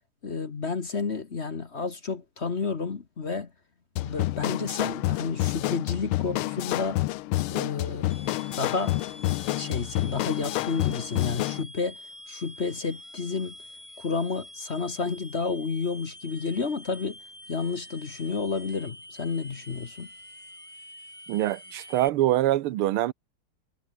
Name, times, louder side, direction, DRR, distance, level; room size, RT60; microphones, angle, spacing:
voice 1, 0.2-3.5 4.0-7.0 7.5-8.2 8.6-9.0 9.5-12.0 12.3-13.5 14.0-17.2 17.5-20.1, left 4 dB, 35° left, 1.4 m, -31 dB
sound 1, 4.0-11.6, left 17 dB, 85° left, 1.5 m, -29 dB
sound 2, 8.1-22.1, left 1 dB, 15° left, 6.9 m, -46 dB
voice 2, 21.3-23.1, right 14 dB, 85° right, 1.7 m, -24 dB
omnidirectional pair, 2.3 m